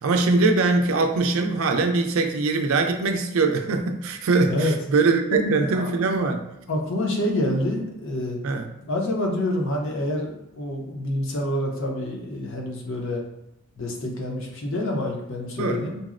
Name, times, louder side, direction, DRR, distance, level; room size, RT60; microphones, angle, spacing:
voice 1, 0.0-6.4 8.4-8.6 15.6-15.8, right 3 dB, 75° right, 5 dB, 0.4 m, -22 dB
voice 2, 5.3-5.9 6.7-8.4 8.9-13.2 13.8-16.0, left 1 dB, 65° left, 0 dB, 0.6 m, -27 dB
3.9 x 2.0 x 2.4 m, 0.86 s
head